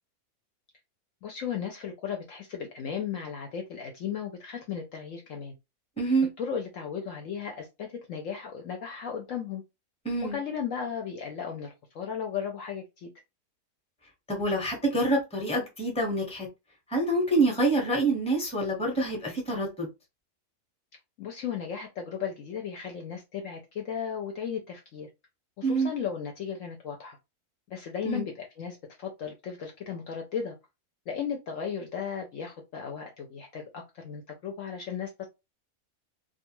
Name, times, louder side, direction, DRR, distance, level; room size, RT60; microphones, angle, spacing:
voice 1, 1.2-5.5 6.4-9.6 10.2-13.1 21.2-25.1 25.6-27.2 27.7-30.6 31.1-35.3, left 7 dB, 65° left, 0.9 m, -35 dB
voice 2, 6.0-6.3 10.0-10.4 14.3-16.5 16.9-19.9 25.6-25.9 28.0-28.2, right 2 dB, 5° left, 0.8 m, -26 dB
2.4 x 2.3 x 2.9 m
omnidirectional pair, 1.6 m